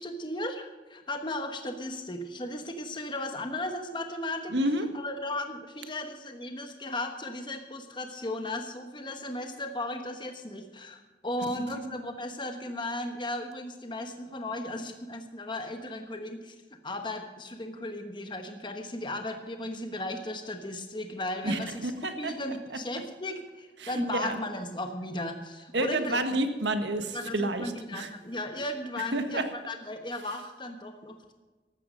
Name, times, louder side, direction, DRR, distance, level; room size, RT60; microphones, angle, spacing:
voice 1, 0.0-4.5 4.9-16.5 16.8-21.9 22.2-26.2 27.1-31.3, left 1 dB, 25° left, 5 dB, 1.2 m, -36 dB
voice 2, 4.5-4.9 21.4-22.3 23.8-24.4 25.7-28.1 29.1-29.4, right 1 dB, 90° right, 7 dB, 1.6 m, -29 dB
15.0 x 12.5 x 5.3 m, 1.3 s
head